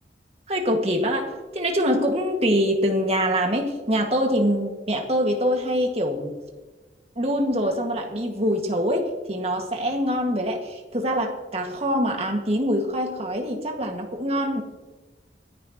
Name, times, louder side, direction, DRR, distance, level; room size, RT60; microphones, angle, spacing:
voice 1, 0.5-6.3 7.2-14.6, equal, 35° right, 2 dB, 2.0 m, -24 dB
26.5 x 10.5 x 3.1 m, 1.2 s
head